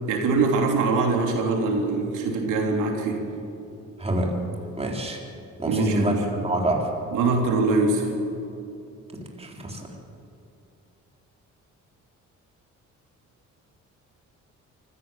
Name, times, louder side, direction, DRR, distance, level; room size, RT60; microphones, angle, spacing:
voice 1, 0.1-3.2 5.6-6.1 7.1-8.1, right 3 dB, 90° right, 2 dB, 3.3 m, -23 dB
voice 2, 4.0-4.4 4.8-5.2 5.6-6.9 9.4-9.8, right 1 dB, 20° right, 0 dB, 3.8 m, -26 dB
24.5 x 15.0 x 7.5 m, 2.8 s
cardioid pair, 90°, 30 cm